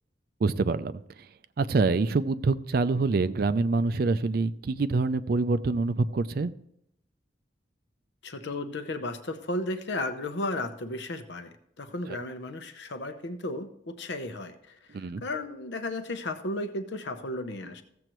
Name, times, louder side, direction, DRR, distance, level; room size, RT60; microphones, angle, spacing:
voice 1, 0.4-1.0 1.6-6.5 12.1-12.2 14.9-15.2, right 3 dB, 50° right, 13 dB, 0.4 m, -26 dB
voice 2, 8.2-17.8, left 2 dB, 70° left, 9 dB, 0.8 m, -34 dB
15.0 x 7.7 x 3.1 m, 0.75 s
head